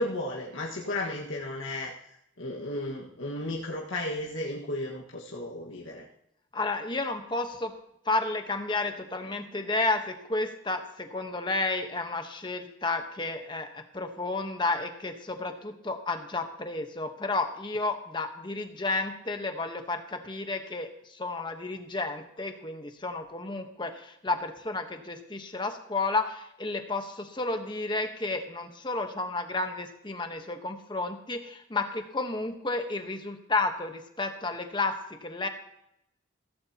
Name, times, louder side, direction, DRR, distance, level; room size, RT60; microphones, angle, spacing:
voice 1, 0.0-1.9 2.4-6.1, left 1 dB, 80° left, -4 dB, 1.7 m, -34 dB
voice 2, 6.5-7.7 8.1-20.9 21.2-34.9 35.2-35.5, left 3 dB, 25° left, 6 dB, 1.1 m, -31 dB
16.0 x 14.5 x 2.9 m, 0.79 s
head